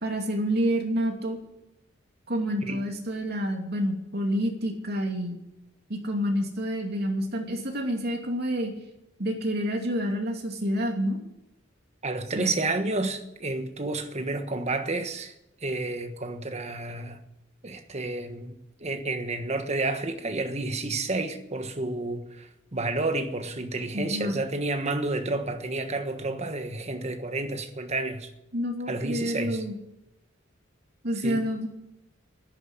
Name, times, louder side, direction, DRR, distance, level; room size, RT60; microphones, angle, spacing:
voice 1, 0.0-1.4 2.3-5.4 5.9-8.7 9.2-11.2 12.3-12.5 23.9-24.4 28.5-29.8 31.0-31.7, equal, 55° right, 2.7 m, -28 dB
voice 2, 12.0-15.3 15.6-17.2 17.6-22.5 22.7-28.3 28.9-29.6 31.2-31.4, right 2 dB, 35° right, 1.4 m, -30 dB
11.5 x 10.0 x 9.4 m
head